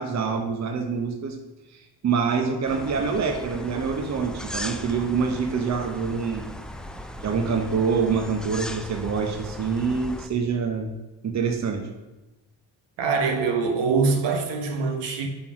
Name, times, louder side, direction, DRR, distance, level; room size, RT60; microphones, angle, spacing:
voice 1, 0.0-1.4 1.7-6.5 7.2-10.9 11.2-11.9, right 5 dB, 40° right, 0.9 m, -26 dB
sound 1, 2.6-10.3, equal, ahead, 0.4 m, -37 dB
voice 2, 13.0-15.3, right 4 dB, 70° right, 1.2 m, -23 dB
5.3 x 4.5 x 6.0 m
supercardioid pair, 75°, 45 cm